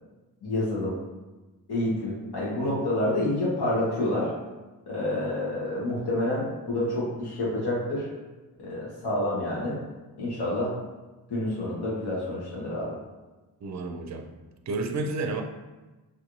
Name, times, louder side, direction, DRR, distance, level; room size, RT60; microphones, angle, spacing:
voice 1, 0.4-1.0 1.7-4.3 4.9-8.1 8.6-9.8 10.2-10.8 11.3-13.0, left 1 dB, 85° left, -7 dB, 1.3 m, -28 dB
voice 2, 13.6-14.3 14.7-15.4, right 3 dB, 45° right, 4 dB, 0.4 m, -30 dB
3.1 x 2.5 x 3.1 m, 1.2 s
cardioid pair, 60°, 38 cm